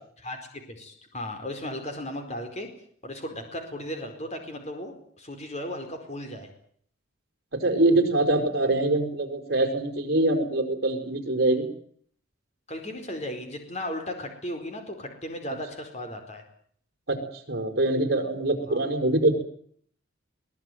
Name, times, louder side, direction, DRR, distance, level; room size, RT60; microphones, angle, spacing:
voice 1, 0.7-2.7 3.0-6.5 12.7-16.4 18.7-18.8, left 1 dB, 30° left, 5 dB, 4.6 m, -36 dB
voice 2, 7.5-11.7 17.1-17.2 17.5-19.3, right 2 dB, 50° right, 5 dB, 5.2 m, -24 dB
22.0 x 19.5 x 9.4 m, 0.62 s
head